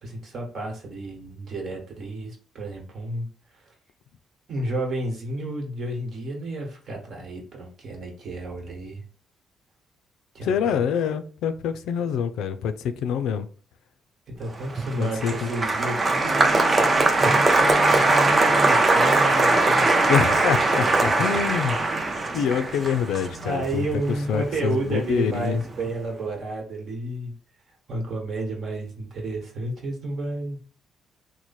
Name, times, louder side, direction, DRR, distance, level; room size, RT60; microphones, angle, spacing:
voice 1, 0.0-3.3 4.5-9.0 10.3-10.5 14.4-20.2 23.3-27.3 27.9-30.8, right 2 dB, 60° right, 1.3 m, -31 dB
voice 2, 10.4-13.5 15.0-15.5 20.1-21.8 22.3-24.0 24.3-25.6, left 7 dB, 85° left, 0.3 m, -25 dB
Applause, 14.6-25.0 25.3-25.9, right 2 dB, 30° right, 0.5 m, -21 dB
3.1 x 2.1 x 4.1 m
cardioid pair, 90°, 0 cm